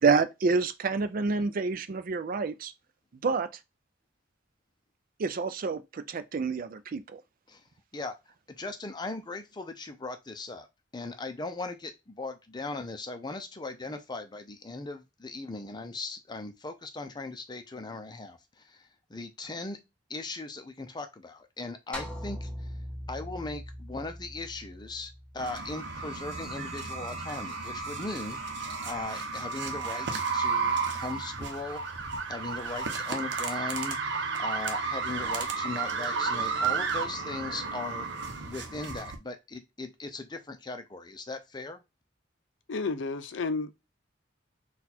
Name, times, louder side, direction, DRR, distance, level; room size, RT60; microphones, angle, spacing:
voice 1, 0.0-2.7 3.2-3.5 5.2-7.2, right 4 dB, 50° right, 0.4 m, -28 dB
voice 2, 8.5-10.7 10.9-19.8 20.1-22.7 23.1-28.4 28.8-31.8 32.3-34.0 34.4-38.1 38.4-41.8, left 3 dB, 25° left, 0.6 m, -38 dB
sound 1, 21.9-26.3, equal, 5° left, 1.0 m, -41 dB
sound 2, 25.4-39.2, right 4 dB, 65° right, 0.8 m, -32 dB
voice 3, 42.7-43.7, left 3 dB, 75° left, 0.5 m, -31 dB
4.2 x 2.4 x 4.2 m
head